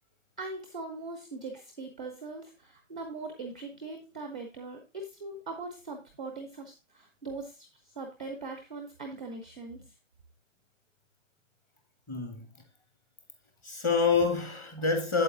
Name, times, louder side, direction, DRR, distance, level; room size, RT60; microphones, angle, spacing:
voice 1, 0.4-9.9, right 3 dB, 5° right, 0.4 m, -41 dB
voice 2, 12.1-12.5 13.6-15.2, left 4 dB, 10° left, 0.8 m, -27 dB
8.1 x 8.0 x 2.9 m
figure-of-eight pair, 145°, 38 cm